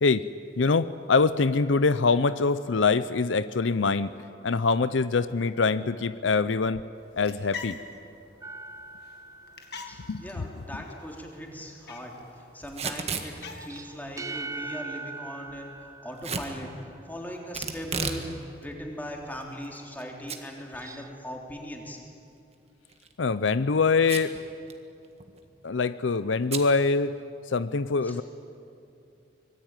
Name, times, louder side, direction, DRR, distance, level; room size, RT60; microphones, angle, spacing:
voice 1, 0.6-4.1 4.4-6.8 7.2-7.8 10.1-10.5 23.2-24.4 25.6-27.2 27.5-28.2, left 4 dB, 80° left, 14 dB, 0.6 m, -24 dB
sound 1, 6.9-14.8, left 5 dB, 55° left, 2.2 m, -46 dB
sound 2, 8.4-10.4 13.4-17.0 20.6-21.1, right 3 dB, 15° right, 0.7 m, -41 dB
voice 2, 9.8-12.1 12.5-13.3 13.6-15.7 16.0-18.3 18.6-22.0 28.0-28.2, equal, 10° left, 0 dB, 3.4 m, -39 dB
Packing tape duct tape / Tearing, 12.7-13.3 16.2-16.5 17.5-18.3 18.6-18.7 19.4-20.0 20.3-20.4 20.8-20.9 22.9-23.1 24.0-24.4 24.7-24.8 25.0-25.4 26.5-26.7, right 5 dB, 35° right, 1.7 m, -32 dB
25.0 x 21.5 x 9.1 m, 2.6 s
head